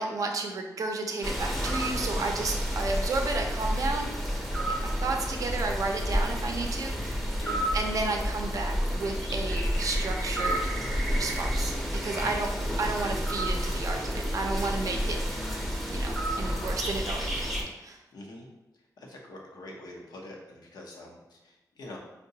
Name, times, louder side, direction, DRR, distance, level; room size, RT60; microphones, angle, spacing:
voice 1, 0.0-4.1 4.8-7.4 7.7-10.7 11.2-12.5 12.8-15.2 15.9-18.0, right 3 dB, 55° right, 3 dB, 0.5 m, -32 dB
sound 1, 1.2-17.6, equal, ahead, 0.6 m, -30 dB
voice 2, 1.9-2.2 7.4-7.7 12.1-12.7 14.7-15.1 18.1-18.5 19.0-22.0, left 1 dB, 85° left, -1 dB, 0.7 m, -45 dB
4.5 x 2.1 x 2.7 m, 1.0 s
wide cardioid pair, 145°, 7 cm